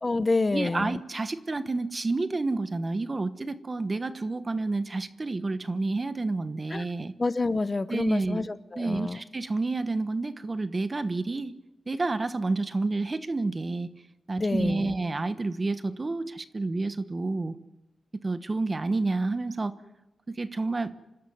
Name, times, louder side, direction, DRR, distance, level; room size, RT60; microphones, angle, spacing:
voice 1, 0.0-1.0 6.7-6.9 7.2-9.2 14.4-14.9, left 3 dB, 35° left, 14 dB, 0.9 m, -28 dB
voice 2, 0.5-7.1 7.9-8.5 8.8-11.5 11.9-13.9 14.3-17.6 18.2-19.7 20.3-20.9, right 3 dB, 35° right, 12 dB, 1.2 m, -29 dB
27.0 x 13.0 x 9.4 m, 0.97 s
cardioid pair, 75°, 0 cm